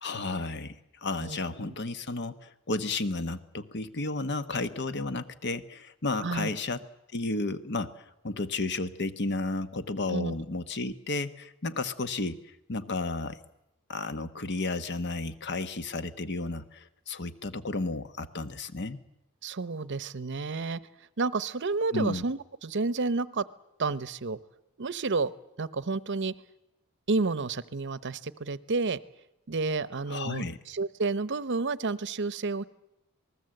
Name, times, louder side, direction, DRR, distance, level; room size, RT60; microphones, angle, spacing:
voice 1, 0.0-6.8 7.1-12.4 12.7-13.4 13.9-19.0 21.9-22.2 30.1-30.6, left 3 dB, 50° left, 11 dB, 1.2 m, -33 dB
voice 2, 6.2-6.5 10.1-10.3 19.4-20.8 21.2-23.4 23.8-24.4 24.8-25.3 25.6-26.3 27.1-29.0 29.5-32.6, right 3 dB, 55° right, 17 dB, 0.8 m, -30 dB
27.5 x 19.5 x 7.8 m, 0.85 s
head